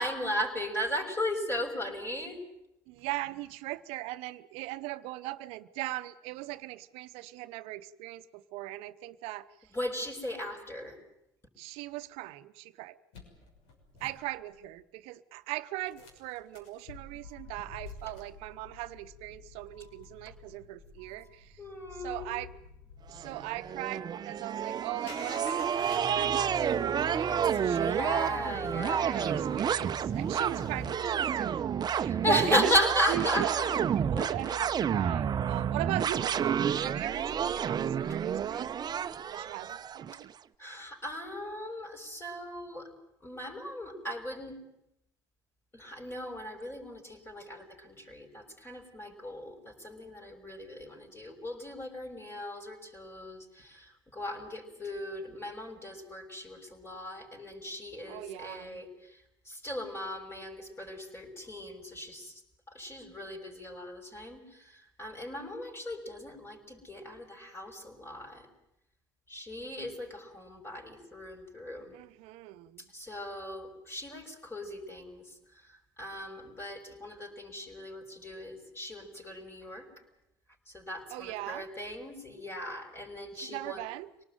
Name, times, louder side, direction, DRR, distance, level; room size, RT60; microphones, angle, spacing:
voice 1, 0.0-2.4 9.7-11.0 21.6-22.3 27.3-29.4 32.1-33.7 34.1-34.6 40.6-42.9 43.2-44.6 45.7-62.4 62.7-68.5 69.3-72.0 72.8-79.9 80.7-83.8, left 1 dB, 25° left, 3 dB, 6.4 m, -36 dB
voice 2, 2.9-9.5 11.6-12.9 14.0-21.6 22.0-22.5 23.1-27.3 27.6-28.4 28.9-32.7 33.1-33.5 34.1-38.7 39.3-40.3 58.1-58.8 71.9-72.9 81.1-81.7 83.4-84.1, right 18 dB, 70° right, 13 dB, 1.0 m, -39 dB
sound 1, 13.1-14.8 15.9-24.0 25.1-31.0, left 3 dB, 70° left, 6.4 m, -49 dB
sound 2, 23.2-40.2, right 8 dB, 40° right, 0.9 m, -30 dB
25.0 x 19.0 x 9.2 m, 0.82 s
hypercardioid pair, 65°, 10 cm